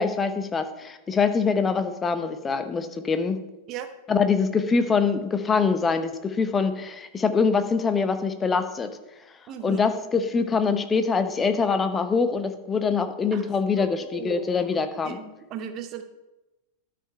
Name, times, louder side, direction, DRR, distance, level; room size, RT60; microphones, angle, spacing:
voice 1, 0.0-3.4 4.1-8.9 9.6-15.2, left 5 dB, 20° left, 9 dB, 0.8 m, -24 dB
voice 2, 9.5-9.9 13.3-13.4 13.8-14.6 15.0-16.0, right 8 dB, 35° right, 8 dB, 0.7 m, -36 dB
12.5 x 5.1 x 4.4 m, 1.0 s
figure-of-eight pair, 90°, 0 cm